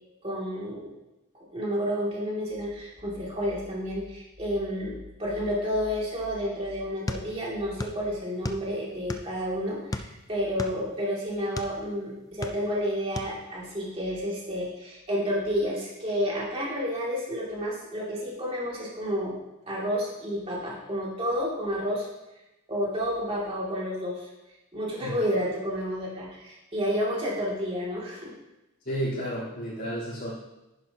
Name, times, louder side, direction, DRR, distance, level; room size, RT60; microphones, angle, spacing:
voice 1, 0.2-0.9 1.5-19.3 19.7-22.1 22.7-24.3 24.7-28.3, equal, 25° right, -5 dB, 2.7 m, -30 dB
sound 1, 7.1-8.0 8.3-9.4 9.9-11.8 12.2-12.9 13.2-13.3, left 1 dB, 15° left, 0.4 m, -34 dB
voice 2, 28.8-30.3, equal, 50° left, -14 dB, 3.9 m, -31 dB
10.5 x 9.8 x 3.0 m, 0.99 s
head